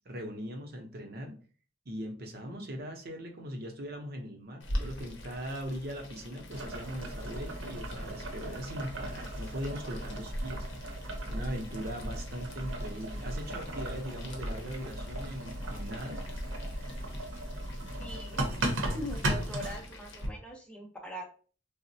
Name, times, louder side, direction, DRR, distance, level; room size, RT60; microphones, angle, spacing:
voice 1, 0.1-1.3 1.9-10.7 11.3-16.2, equal, 50° right, 4 dB, 0.6 m, -40 dB
Boiling, 4.6-20.3, equal, 70° left, 0.7 m, -45 dB
Boiling 2, 6.5-19.8, right 1 dB, 90° right, 0.7 m, -36 dB
voice 2, 18.0-18.4 18.9-21.3, equal, 5° left, 0 dB, 0.6 m, -41 dB
3.7 x 2.0 x 2.6 m, 0.40 s
head